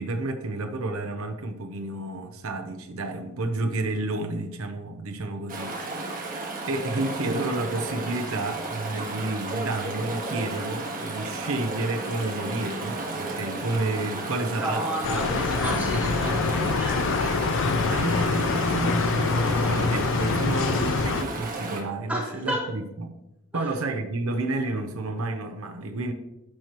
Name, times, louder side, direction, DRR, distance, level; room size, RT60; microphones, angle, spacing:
voice 1, 0.0-6.4 6.7-14.9 15.1-15.2 17.9-23.1 23.5-26.1, right 2 dB, 65° right, 5 dB, 0.7 m, -30 dB
Chatter / Stream, 5.5-21.8, right 2 dB, 40° right, 1.4 m, -33 dB
voice 2, 14.4-17.4 22.1-22.7 23.5-23.7, right 1 dB, 5° right, -6 dB, 2.3 m, -32 dB
sound 1, 15.0-21.2, left 4 dB, 60° left, 0.5 m, -25 dB
13.5 x 4.5 x 3.0 m, 0.92 s
head